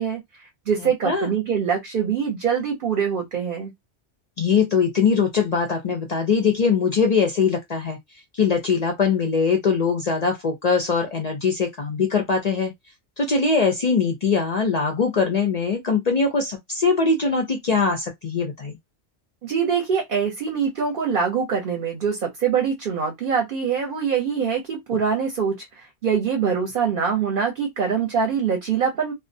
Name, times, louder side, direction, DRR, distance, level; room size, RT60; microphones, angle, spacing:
voice 1, 0.0-3.7 19.4-29.1, right 6 dB, 55° right, 0.8 m, -24 dB
voice 2, 4.4-8.0 8.3-12.7 13.2-18.8, left 5 dB, 55° left, 0.4 m, -21 dB
2.4 x 2.1 x 2.5 m
omnidirectional pair, 1.2 m